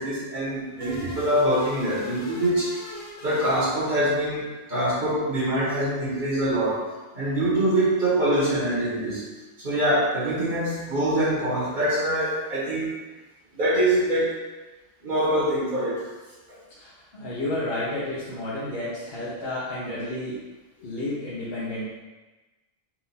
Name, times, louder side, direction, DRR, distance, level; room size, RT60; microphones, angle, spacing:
voice 1, 0.0-6.8 7.1-9.2 9.6-12.9 13.5-14.4 15.0-16.1 16.5-16.6 20.8-20.9, right 1 dB, 40° right, -8 dB, 1.4 m, -24 dB
sound 1, 0.8-4.4, left 2 dB, 80° left, 1.1 m, -41 dB
voice 2, 16.8-20.4 20.8-21.9, left 1 dB, 55° left, -9 dB, 1.1 m, -31 dB
4.5 x 2.6 x 4.1 m, 1.2 s
omnidirectional pair, 1.3 m